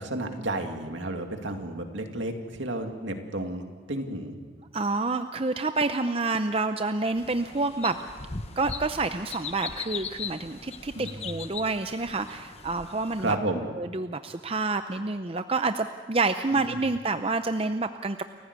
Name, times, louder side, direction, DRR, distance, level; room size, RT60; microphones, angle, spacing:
voice 1, 0.0-4.4 11.0-11.4 13.2-13.7 16.5-16.6, right 1 dB, 70° right, 4 dB, 2.5 m, -32 dB
voice 2, 4.7-8.0 8.6-13.4 13.8-18.2, right 3 dB, 30° right, 8 dB, 0.6 m, -28 dB
sound 1, 7.2-13.4, left 5 dB, 30° left, 1.0 m, -39 dB
29.5 x 15.5 x 8.2 m, 1.5 s
head